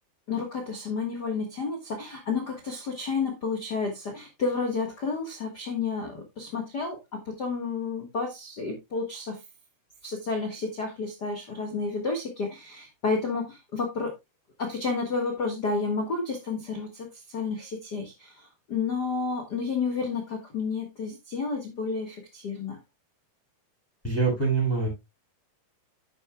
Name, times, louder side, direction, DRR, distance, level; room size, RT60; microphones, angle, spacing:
voice 1, 0.3-9.4 10.0-14.1 14.6-22.8, left 4 dB, 90° left, 0.9 m, -31 dB
voice 2, 24.0-24.9, right 4 dB, 5° left, 5.9 m, -24 dB
11.0 x 8.9 x 2.3 m
omnidirectional pair, 4.6 m